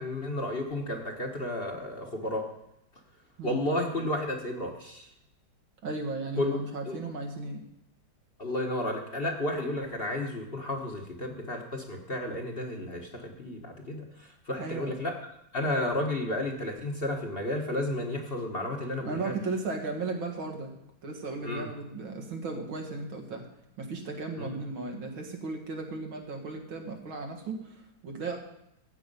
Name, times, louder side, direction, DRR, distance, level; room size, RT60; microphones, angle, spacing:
voice 1, 0.0-2.5 3.4-5.1 6.4-6.6 6.8-6.9 8.4-15.2 15.5-19.4 21.4-21.7 24.4-24.5, left 1 dB, 35° left, 2 dB, 1.2 m, -32 dB
voice 2, 5.8-7.6 14.6-14.9 19.0-20.7 21.0-23.4 23.8-28.4, right 3 dB, 85° right, 3 dB, 2.6 m, -35 dB
14.0 x 8.3 x 5.4 m, 0.81 s
omnidirectional pair, 2.1 m